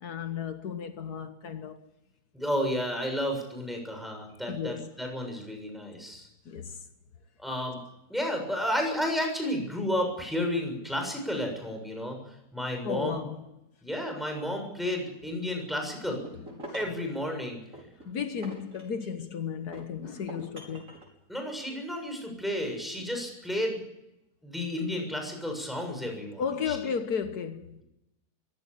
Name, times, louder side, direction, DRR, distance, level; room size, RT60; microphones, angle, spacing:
voice 1, 0.0-1.9 4.5-5.0 6.5-6.8 12.8-13.5 16.6-16.9 18.0-20.9 23.0-23.1 26.4-27.8, left 7 dB, 75° left, 1.8 m, -34 dB
voice 2, 2.3-6.3 7.4-7.8 8.1-13.2 13.8-16.2 16.7-17.6 21.3-23.8 24.4-26.8, left 1 dB, ahead, 6.9 m, -32 dB
sound 1, 16.0-17.1 17.7-19.3 19.7-21.1, right 1 dB, 55° right, 6.4 m, -45 dB
24.0 x 16.0 x 8.4 m
omnidirectional pair, 1.7 m